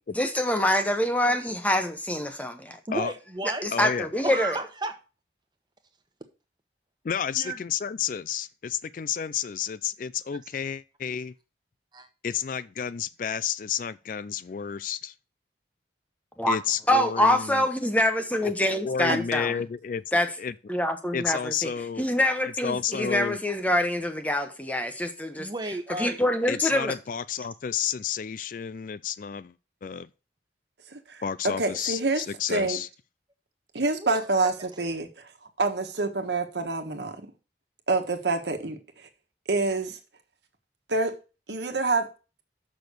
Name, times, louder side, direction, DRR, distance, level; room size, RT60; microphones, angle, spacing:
voice 1, 0.2-2.8 3.6-4.6 16.4-16.6 16.9-19.6 20.1-20.3 20.7-21.7 22.0-25.5 26.0-26.9, left 1 dB, 10° left, 0.9 m, -25 dB
voice 2, 2.7-4.9 7.3-7.6 11.9-12.1 25.4-26.2 34.0-34.2, right 2 dB, 25° right, 1.1 m, -34 dB
voice 3, 3.7-4.1 7.0-11.3 12.2-15.1 16.5-17.7 18.4-18.5 18.8-20.0 20.4-20.5 21.1-22.1 22.4-23.4 26.5-29.5 29.8-30.1 31.2-32.9, left 8 dB, 45° left, 0.3 m, -31 dB
voice 4, 30.9-31.2 31.6-32.8 33.7-35.3 35.6-37.3 37.9-39.1 39.5-40.0 40.9-41.2 41.5-42.1, right 3 dB, 75° right, 1.4 m, -27 dB
6.6 x 6.2 x 6.8 m
head